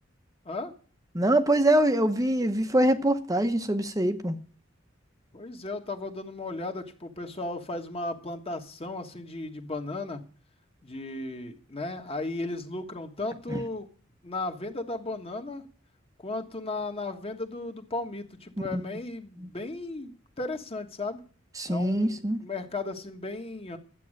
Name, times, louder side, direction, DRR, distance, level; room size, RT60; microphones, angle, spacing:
voice 1, 1.1-4.4 13.5-13.6 18.7-18.8 19.4-19.5 21.6-22.4, right 1 dB, 15° right, 0.8 m, -24 dB
voice 2, 5.3-10.2 10.8-13.9 14.2-15.6 16.2-20.1 20.4-21.2 21.7-23.8, left 2 dB, 30° left, 1.5 m, -35 dB
12.0 x 8.6 x 6.4 m
head